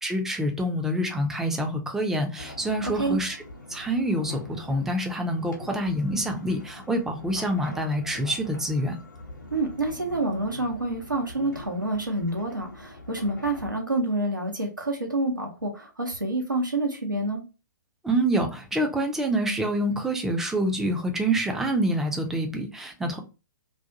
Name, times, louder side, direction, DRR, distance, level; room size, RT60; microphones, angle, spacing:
voice 1, 0.0-3.4 3.7-9.0 18.0-23.2, right 1 dB, 5° right, 0.4 m, -26 dB
sound 1, 2.4-13.8, left 2 dB, 75° left, 0.8 m, -43 dB
voice 2, 9.5-17.4, right 2 dB, 85° right, 0.9 m, -28 dB
2.5 x 2.2 x 2.7 m
figure-of-eight pair, 120°, 10 cm